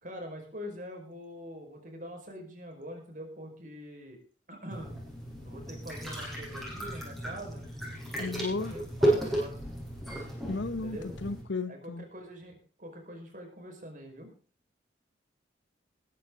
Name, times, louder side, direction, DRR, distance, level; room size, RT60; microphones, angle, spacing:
voice 1, 0.0-4.2 4.5-5.0 5.4-7.7 8.2-9.6 10.8-11.2 11.7-14.3, equal, 45° right, 5.1 m, -44 dB
sound 1, 4.7-11.4, right 1 dB, ahead, 6.4 m, -33 dB
voice 2, 8.2-8.7 10.5-12.1, left 3 dB, 80° left, 1.0 m, -34 dB
21.0 x 11.0 x 3.8 m
head